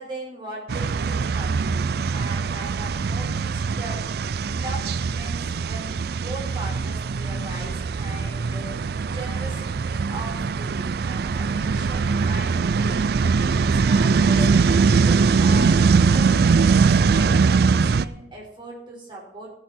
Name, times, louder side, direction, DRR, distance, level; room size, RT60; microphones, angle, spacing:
voice 1, 0.0-4.1 4.5-8.7 9.1-13.0 13.5-19.5, right 2 dB, 25° right, -3 dB, 4.9 m, -38 dB
sound 1, 0.7-18.0, right 5 dB, 55° right, 0.4 m, -21 dB
14.5 x 10.5 x 4.4 m, 0.79 s
head